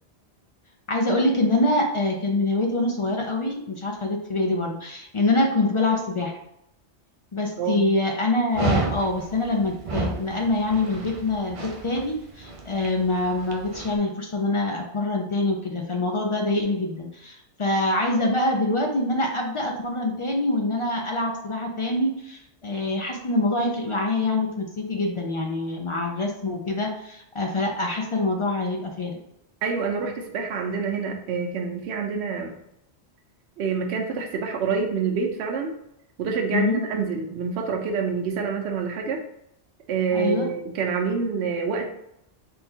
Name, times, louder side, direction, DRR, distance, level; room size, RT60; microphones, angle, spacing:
voice 1, 0.9-6.3 7.3-29.2 36.5-36.8 40.1-40.5, left 2 dB, 50° left, 1 dB, 0.3 m, -25 dB
voice 2, 7.6-7.9 29.6-32.6 33.6-35.7 36.2-39.2 39.9-41.8, right 5 dB, 75° right, 2 dB, 0.9 m, -27 dB
Dog, 8.5-13.9, right 3 dB, 55° right, 0.3 m, -31 dB
3.5 x 2.3 x 4.3 m, 0.80 s
omnidirectional pair, 1.2 m